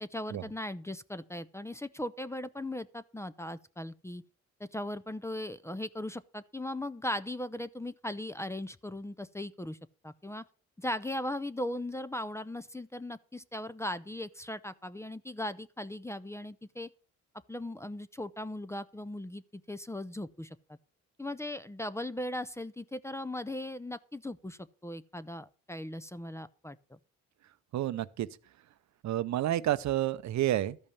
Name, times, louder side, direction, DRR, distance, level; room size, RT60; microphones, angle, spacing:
voice 1, 0.0-4.2 4.6-9.8 10.0-10.4 10.8-16.9 17.5-19.4 19.7-20.6 21.2-27.0, left 1 dB, 10° left, 0.5 m, -38 dB
voice 2, 27.7-28.3 29.0-30.8, right 13 dB, 65° right, 0.7 m, -29 dB
13.0 x 5.4 x 6.9 m
cardioid pair, 90°, 30 cm